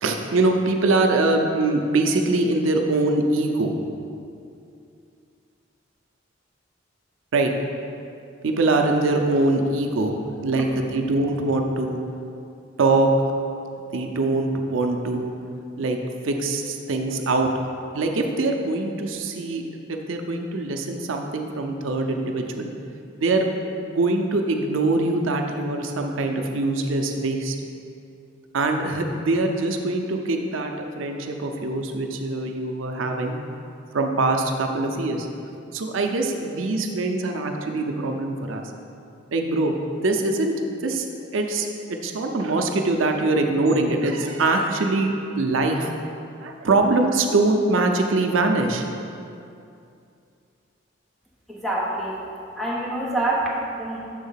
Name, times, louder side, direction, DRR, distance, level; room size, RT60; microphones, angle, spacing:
voice 1, 0.0-3.7 7.3-7.5 8.4-12.0 12.8-13.1 13.9-15.3 15.8-16.0 16.2-17.5 17.9-19.6 19.9-22.7 23.2-23.5 23.8-27.6 28.5-33.4 33.9-35.3 35.7-38.6 39.3-39.8 40.0-41.1 41.3-41.7 42.0-45.9 46.4-48.9, right 2 dB, 90° right, 3 dB, 0.5 m, -23 dB
voice 2, 51.5-52.2 52.6-54.0, right 1 dB, ahead, -6 dB, 1.0 m, -26 dB
6.6 x 3.5 x 5.6 m, 2.6 s
head